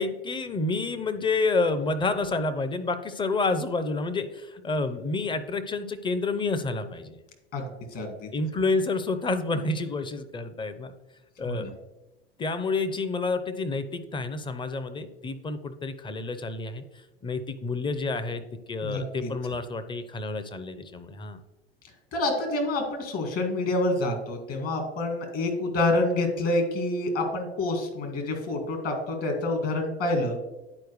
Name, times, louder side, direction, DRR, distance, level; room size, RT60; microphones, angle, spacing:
voice 1, 0.0-7.2 8.3-10.9 11.4-11.7 12.4-16.8 17.2-18.4 18.7-21.4, left 3 dB, 15° left, 10 dB, 0.6 m, -29 dB
voice 2, 7.5-8.3 11.4-11.7 18.8-19.3 22.1-30.4, left 2 dB, 45° left, 4 dB, 1.9 m, -27 dB
10.5 x 4.6 x 3.1 m, 1.0 s
figure-of-eight pair, 80°, 32 cm